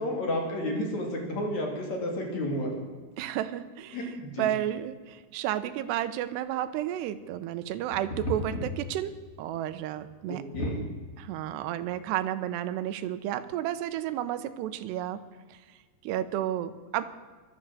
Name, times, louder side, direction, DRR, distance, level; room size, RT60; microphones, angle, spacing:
voice 1, 0.0-2.7 3.9-4.4 10.3-10.8, left 1 dB, 45° left, 1 dB, 3.6 m, -31 dB
voice 2, 3.2-10.4 11.2-15.2 15.5-15.6 16.0-17.1, right 12 dB, 90° right, 12 dB, 2.9 m, -32 dB
sound 1, 7.6-7.7 7.9-9.3 9.6-9.7 10.0-10.1 10.5-11.2 11.9-12.0, left 1 dB, 20° left, 2.4 m, -34 dB
23.0 x 7.8 x 7.7 m, 1.4 s
omnidirectional pair, 4.9 m